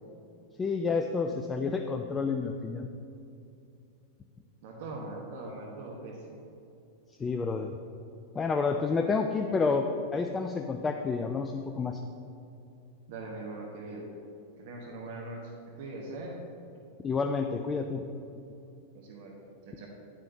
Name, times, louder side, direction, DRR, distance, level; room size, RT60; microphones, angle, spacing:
voice 1, 0.6-2.9 7.2-7.7 8.3-12.0 17.0-18.0, left 4 dB, 20° left, 5 dB, 0.4 m, -29 dB
voice 2, 4.6-6.4 13.1-14.0 14.6-15.5 15.8-16.4 18.9-19.3 19.6-19.9, right 2 dB, 50° right, -1 dB, 1.2 m, -41 dB
10.5 x 9.8 x 2.8 m, 2.7 s
figure-of-eight pair, 90°, 0 cm